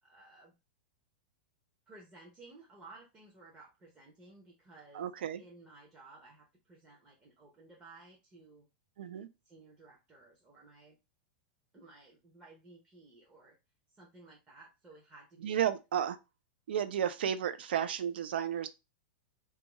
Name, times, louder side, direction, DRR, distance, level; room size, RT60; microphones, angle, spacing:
voice 1, 0.0-0.5 1.9-5.1 5.4-8.7 9.4-11.0 11.7-13.6 13.9-15.6, right 3 dB, 15° right, 0.5 m, -56 dB
voice 2, 4.9-5.4 9.0-9.3 15.4-16.2 16.7-18.7, right 9 dB, 80° right, 0.4 m, -32 dB
2.6 x 2.3 x 2.9 m
supercardioid pair, 155°, 5 cm